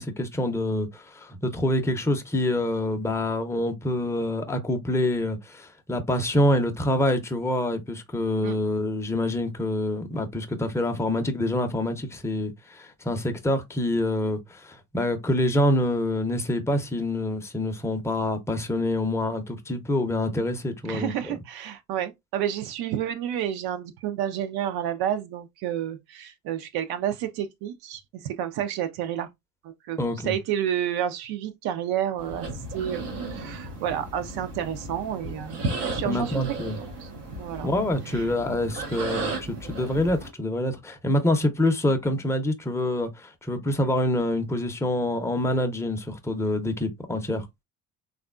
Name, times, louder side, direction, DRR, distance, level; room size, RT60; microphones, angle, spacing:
voice 1, 0.0-21.4 30.0-30.3 36.0-36.8 37.6-47.5, left 1 dB, 5° left, 0.7 m, -26 dB
voice 2, 20.8-29.3 29.6-36.5 37.0-37.1 37.4-37.7 38.1-38.2, right 10 dB, 55° right, 0.6 m, -30 dB
sound 1, 32.2-40.3, right 2 dB, 90° right, 0.8 m, -35 dB
3.4 x 2.4 x 2.3 m
hypercardioid pair, 50°, 46 cm